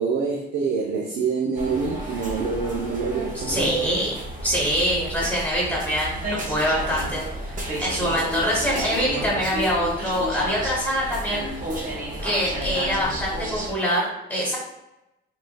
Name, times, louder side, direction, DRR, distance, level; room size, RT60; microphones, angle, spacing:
voice 1, 0.0-3.8, right 5 dB, 80° right, -1 dB, 0.6 m, -26 dB
sound 1, 1.5-13.7, right 1 dB, 40° right, 0.7 m, -32 dB
voice 2, 3.3-11.5 12.2-14.6, equal, 10° left, -5 dB, 1.2 m, -25 dB
3.9 x 2.4 x 2.2 m, 0.91 s
cardioid pair, 90°, 20 cm